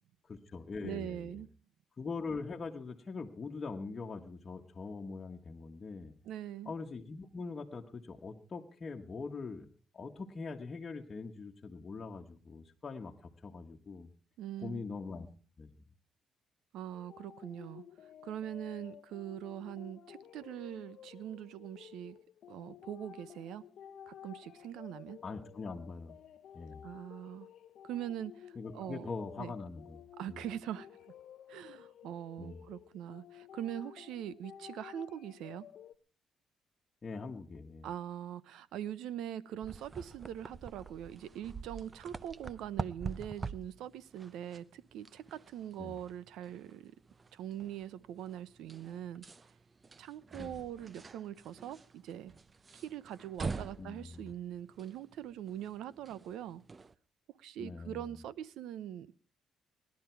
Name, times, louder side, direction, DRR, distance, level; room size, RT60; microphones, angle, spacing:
voice 1, 0.3-1.4 2.0-6.1 6.6-9.7 9.9-14.1 14.6-15.3 15.6-15.7 25.2-26.1 26.5-26.8 28.5-30.0 30.3-30.4 32.4-32.6 37.0-37.9 45.8-46.0 50.4-50.6 53.8-54.3 57.6-58.1, left 4 dB, 35° left, 1 dB, 1.4 m, -42 dB
voice 2, 0.8-1.5 6.2-6.7 14.4-14.8 16.7-17.8 18.2-22.2 22.5-23.6 24.1-25.2 26.8-27.5 27.8-28.4 28.7-29.1 29.4-29.5 30.2-30.9 31.5-35.7 37.8-46.9 47.3-49.3 50.0-52.3 52.7-56.6 57.4-59.1, right 10 dB, 85° right, 19 dB, 0.7 m, -42 dB
sound 1, 16.9-36.0, left 9 dB, 70° left, 0.7 m, -53 dB
sound 2, 39.6-56.9, right 4 dB, 30° right, 0.6 m, -46 dB
18.5 x 11.5 x 4.6 m, 0.40 s
cardioid pair, 90°, 0 cm